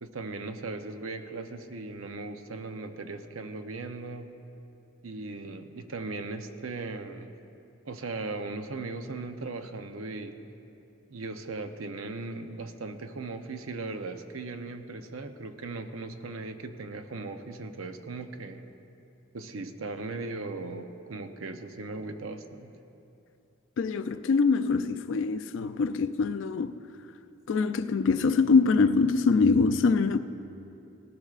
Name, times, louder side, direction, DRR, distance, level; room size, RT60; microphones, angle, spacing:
voice 1, 0.0-4.3 5.0-7.3 7.9-10.4 11.1-18.6 19.3-22.7, right 3 dB, 90° right, 0.7 m, -38 dB
voice 2, 23.8-26.7 27.5-30.2, left 4 dB, 65° left, 0.4 m, -24 dB
18.0 x 13.5 x 2.4 m
head